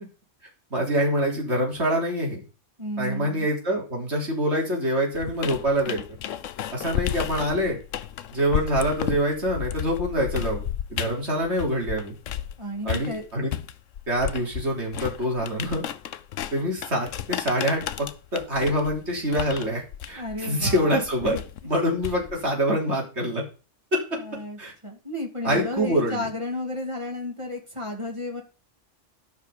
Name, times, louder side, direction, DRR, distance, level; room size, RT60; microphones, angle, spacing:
voice 1, 0.7-2.4 3.0-6.0 6.7-7.8 8.3-12.1 12.8-13.5 14.1-15.8 16.5-17.8 18.3-21.4 21.6-23.4 23.9-24.0 24.6-24.7 25.4-26.3, equal, 60° right, -2 dB, 3.9 m, -25 dB
voice 2, 2.8-3.5 12.6-13.3 20.1-21.4 24.2-28.4, left 1 dB, 25° right, 3 dB, 2.4 m, -33 dB
sound 1, 5.2-12.5 12.9-22.5, left 10 dB, 80° left, 1.0 m, -33 dB
12.0 x 5.9 x 5.2 m, 0.35 s
omnidirectional pair, 1.3 m